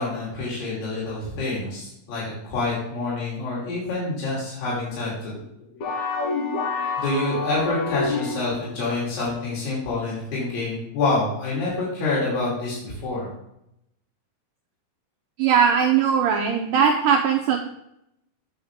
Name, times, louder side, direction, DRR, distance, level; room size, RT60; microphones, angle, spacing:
voice 1, 0.0-5.4 5.7-5.9 7.0-13.3, left 3 dB, 90° left, -6 dB, 4.9 m, -27 dB
sound 1, 5.8-8.7, left 3 dB, 60° left, 2.1 m, -27 dB
voice 2, 15.4-17.6, right 7 dB, 90° right, 3 dB, 1.8 m, -19 dB
7.9 x 7.8 x 3.6 m, 0.79 s
omnidirectional pair, 4.5 m